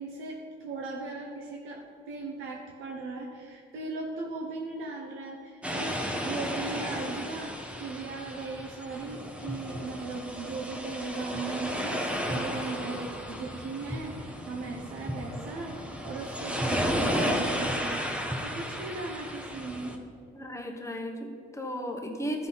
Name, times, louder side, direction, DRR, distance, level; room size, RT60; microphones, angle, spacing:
voice 1, 0.0-7.5 7.8-15.8 16.0-18.2 18.4-20.0, right 3 dB, 90° right, 0 dB, 0.9 m, -38 dB
sound 1, 5.6-20.0, equal, 5° right, 1.0 m, -33 dB
voice 2, 20.3-22.5, equal, 15° left, 2 dB, 1.2 m, -35 dB
12.5 x 5.7 x 4.0 m, 2.3 s
cardioid pair, 90°, 20 cm